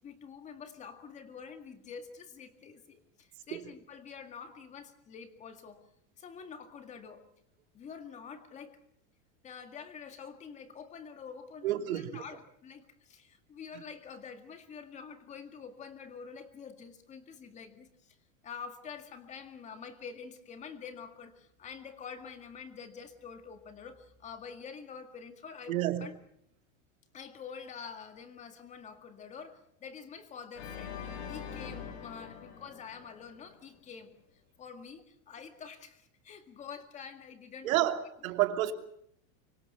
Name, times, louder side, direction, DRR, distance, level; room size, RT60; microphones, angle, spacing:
voice 1, 0.0-5.9 6.2-7.3 7.7-8.8 9.4-18.2 18.4-26.2 27.1-31.0 31.3-34.1 34.6-37.9, left 6 dB, 15° left, 2.0 m, -47 dB
voice 2, 11.6-12.2 25.7-26.0 37.6-38.7, right 13 dB, 90° right, 3.0 m, -29 dB
Organ, 30.5-33.7, left 7 dB, 50° left, 4.5 m, -43 dB
25.0 x 24.5 x 5.7 m
supercardioid pair, 180°, 40 cm